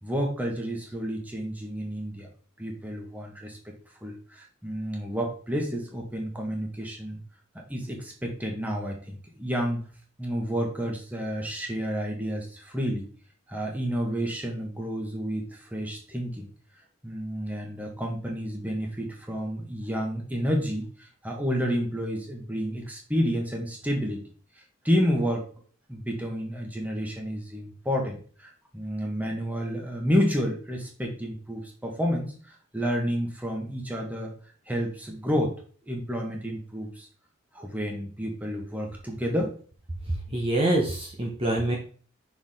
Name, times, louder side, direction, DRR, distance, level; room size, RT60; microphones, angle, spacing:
voice 1, 0.0-2.3 2.6-3.7 4.0-7.2 7.7-9.8 10.2-13.1 13.5-16.5 17.0-24.2 24.8-25.5 25.9-34.3 34.7-35.6 35.9-37.1 37.5-39.6, equal, 10° right, 0 dB, 1.4 m, -30 dB
voice 2, 40.1-41.8, right 1 dB, 25° right, -1 dB, 1.0 m, -25 dB
6.0 x 4.8 x 3.7 m, 0.42 s
head